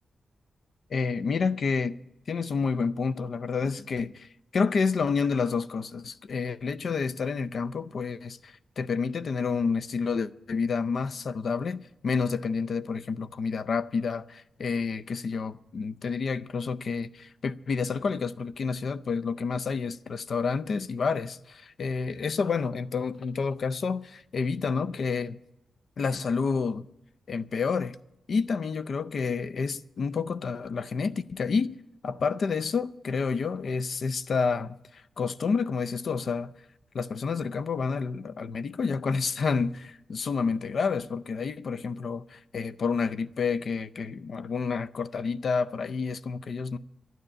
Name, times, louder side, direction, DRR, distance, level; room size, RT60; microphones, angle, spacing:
voice 1, 0.9-2.0 2.3-25.4 26.0-26.9 27.3-28.0 28.3-31.8 32.0-36.5 36.9-46.8, left 5 dB, 55° left, 0.5 m, -29 dB
12.0 x 9.4 x 8.7 m
wide cardioid pair, 140°, 0 cm